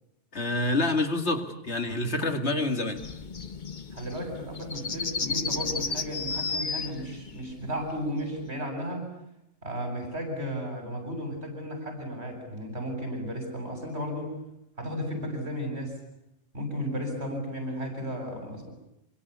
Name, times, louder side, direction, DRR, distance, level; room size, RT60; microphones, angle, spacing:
voice 1, 0.3-3.0, left 2 dB, 70° left, 7 dB, 2.7 m, -27 dB
sound 1, 3.0-8.5, left 4 dB, 45° left, 1.3 m, -33 dB
voice 2, 3.9-9.1 9.6-14.3 14.8-15.9 16.5-18.7, equal, 65° right, 4 dB, 8.3 m, -34 dB
27.5 x 24.0 x 8.4 m, 0.84 s
omnidirectional pair, 1.2 m